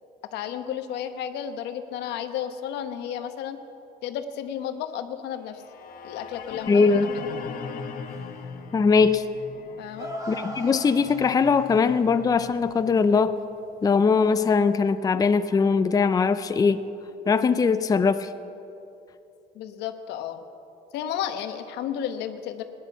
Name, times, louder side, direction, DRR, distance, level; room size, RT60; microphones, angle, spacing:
voice 1, 0.3-3.6 4.0-5.6 6.0-7.0 9.8-10.1 19.5-20.4 20.9-22.6, left 9 dB, 85° left, 8 dB, 1.0 m, -32 dB
sound 1, 5.5-13.6, left 6 dB, 60° left, 1.3 m, -40 dB
voice 2, 6.7-7.1 8.7-9.2 10.3-13.4 13.8-16.9 17.3-18.3, left 5 dB, 20° left, 11 dB, 0.5 m, -21 dB
sound 2, 8.1-8.6 9.2-9.3 10.0-12.0 14.2-14.3, equal, 20° right, 1.9 m, -38 dB
17.0 x 10.5 x 7.0 m, 2.8 s
cardioid pair, 110°, 17 cm